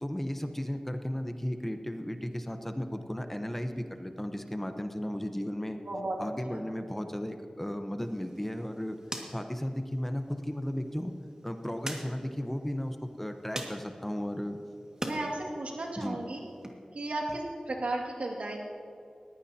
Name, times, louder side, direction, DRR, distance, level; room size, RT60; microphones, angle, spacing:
voice 1, 0.0-5.8 6.2-9.0 9.3-11.1 11.4-14.6 16.0-16.2, equal, 10° left, 6 dB, 1.0 m, -35 dB
voice 2, 5.9-6.2 15.0-16.4 16.9-18.6, right 2 dB, 80° right, -1 dB, 2.3 m, -34 dB
sound 1, 8.0-15.2 15.6-16.7, right 1 dB, 30° right, 2.0 m, -44 dB
20.0 x 16.0 x 2.9 m, 2.5 s
wide cardioid pair, 60°, 2 cm